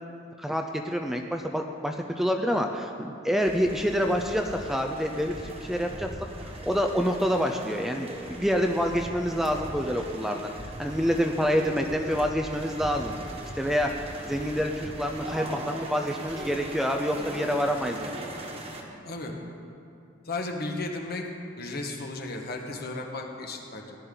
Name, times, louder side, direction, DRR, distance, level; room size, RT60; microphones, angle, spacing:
voice 1, 0.4-6.1 6.4-10.5 10.8-13.1 13.6-18.2, equal, ahead, 3 dB, 0.5 m, -27 dB
sound 1, 3.4-18.8, right 1 dB, 30° right, 1.4 m, -40 dB
voice 2, 20.2-21.2 21.6-24.0, left 2 dB, 55° left, 1 dB, 1.5 m, -34 dB
18.0 x 12.0 x 3.9 m, 2.6 s
head